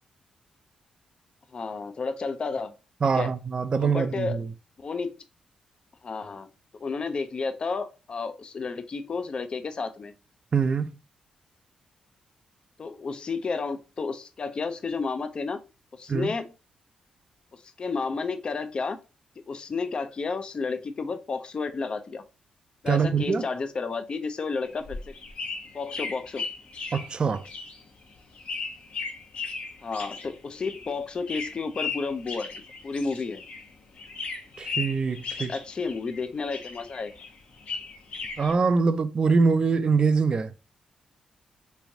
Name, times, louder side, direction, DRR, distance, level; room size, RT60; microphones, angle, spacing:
voice 1, 1.5-2.7 3.1-3.3 3.8-4.4 4.8-5.1 6.0-6.5 6.8-10.1 12.8-15.6 15.9-16.5 17.5-19.0 19.5-22.2 22.8-25.1 25.7-26.4 29.8-32.5 32.8-33.4 35.4-37.1, left 4 dB, 40° left, 0.5 m, -31 dB
voice 2, 3.0-4.5 10.5-10.9 16.1-16.3 22.9-23.5 26.9-27.4 34.6-35.5 38.4-40.5, right 5 dB, 40° right, 0.4 m, -24 dB
sound 1, 24.6-33.7 34.0-36.2 36.5-38.5, left 4 dB, 65° left, 0.8 m, -36 dB
3.3 x 3.1 x 2.6 m
cardioid pair, 85°, 2 cm